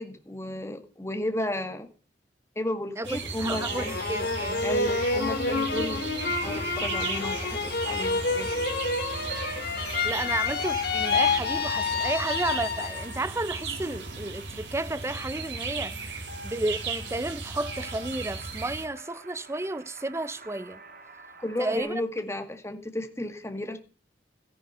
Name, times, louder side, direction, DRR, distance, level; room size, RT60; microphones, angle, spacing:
voice 1, 0.0-1.9 2.6-4.0 4.6-8.7 21.4-23.8, left 1 dB, 15° left, 1.9 m, -33 dB
voice 2, 3.0-4.6 10.0-20.8 21.6-21.9, right 2 dB, 15° right, 0.6 m, -32 dB
sound 1, 3.0-18.9, right 4 dB, 85° right, 3.0 m, -36 dB
sound 2, 3.4-13.2 13.6-14.3, left 4 dB, 60° left, 2.2 m, -29 dB
sound 3, 6.1-21.8, right 2 dB, 55° right, 2.4 m, -47 dB
14.0 x 10.5 x 5.6 m
head